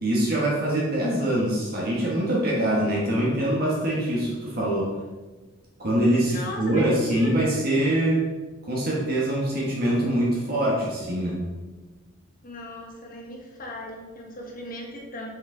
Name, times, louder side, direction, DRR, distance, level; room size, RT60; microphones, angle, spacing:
voice 1, 0.0-4.9 5.8-8.2 8.6-11.5, right 1 dB, 45° right, -4 dB, 1.3 m, -24 dB
voice 2, 6.3-7.4 12.4-15.3, left 1 dB, 40° left, -1 dB, 1.3 m, -38 dB
6.5 x 5.5 x 3.8 m, 1.3 s
head